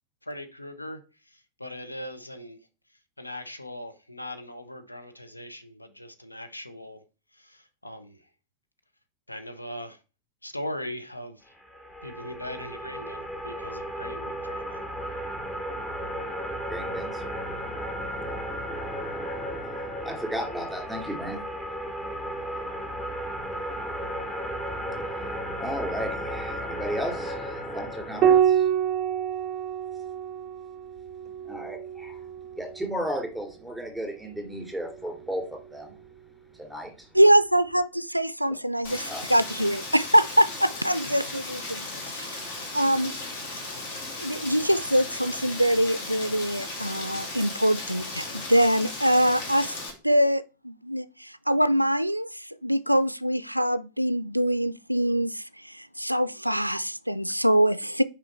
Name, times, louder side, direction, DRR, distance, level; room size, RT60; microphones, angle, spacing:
voice 1, 0.3-1.0 1.6-2.6 3.2-7.0 7.4-8.2 9.3-10.0 10.4-11.4 12.0-14.8, left 1 dB, 85° left, 0.8 m, -39 dB
sound 1, 11.6-28.4, equal, 20° left, 1.3 m, -34 dB
voice 2, 16.7-17.2 18.3-18.4 20.0-21.4 23.5-24.0 25.6-28.7 31.4-32.2 32.6-36.0 36.6-36.9 39.1-39.2, equal, ahead, 2.7 m, -34 dB
Piano, 28.2-33.1 34.7-35.5, right 9 dB, 35° right, 0.5 m, -27 dB
voice 3, 37.1-42.3 42.7-43.1 44.2-49.8 50.0-58.0, equal, 90° right, 0.3 m, -24 dB
Rain, 38.8-49.9, left 2 dB, 50° left, 2.2 m, -36 dB
6.2 x 4.9 x 4.5 m
figure-of-eight pair, 90°, 0 cm